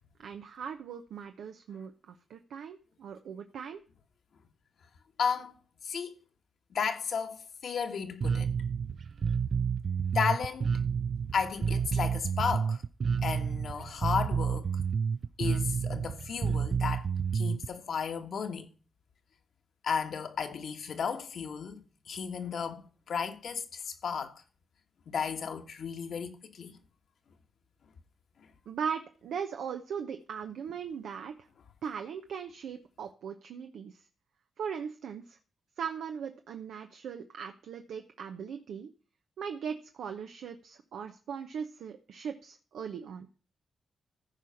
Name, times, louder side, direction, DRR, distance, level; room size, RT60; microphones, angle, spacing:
voice 1, 0.2-3.8 28.7-31.3 31.8-34.0 34.6-35.4 35.8-38.9 39.4-43.3, right 7 dB, 85° right, 0.8 m, -39 dB
voice 2, 5.2-5.6 5.8-6.2 6.7-8.5 10.1-10.8 11.3-12.8 13.2-14.7 15.4-18.7 19.8-24.4 25.1-26.8 28.4-28.5, left 6 dB, 70° left, 1.5 m, -34 dB
Bass guitar, 8.2-17.7, right 6 dB, 60° right, 0.4 m, -30 dB
14.5 x 5.0 x 5.7 m
cardioid pair, 65°, 0 cm